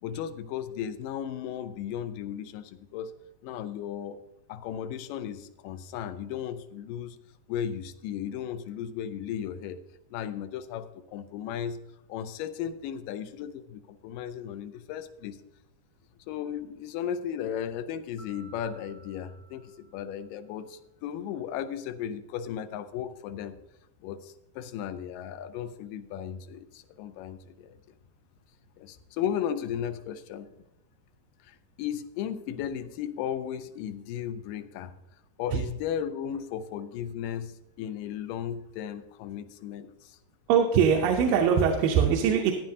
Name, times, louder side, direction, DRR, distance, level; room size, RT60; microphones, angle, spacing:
voice 1, 0.0-3.1 3.4-4.2 4.5-7.2 7.5-9.8 10.1-15.4 16.3-23.6 24.0-27.8 28.8-30.5 31.4-34.9 35.4-40.2, left 9 dB, 80° left, 11 dB, 2.3 m, -35 dB
Mallet percussion, 18.2-20.6, right 3 dB, 15° left, 0.6 m, -56 dB
voice 2, 40.5-42.5, right 7 dB, 85° right, 2 dB, 2.5 m, -22 dB
15.0 x 10.5 x 2.8 m, 0.93 s
omnidirectional pair, 3.9 m